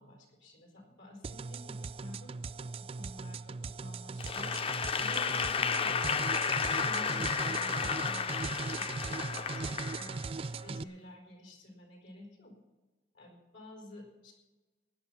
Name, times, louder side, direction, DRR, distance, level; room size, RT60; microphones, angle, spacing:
voice 1, 0.0-12.6 13.1-14.3, left 1 dB, 90° left, 2 dB, 4.7 m, -51 dB
sound 1, 1.2-10.8, right 4 dB, 30° right, 0.4 m, -39 dB
Applause / Crowd, 4.2-10.5, left 6 dB, 30° left, 0.4 m, -32 dB
17.0 x 10.5 x 5.9 m, 1.2 s
head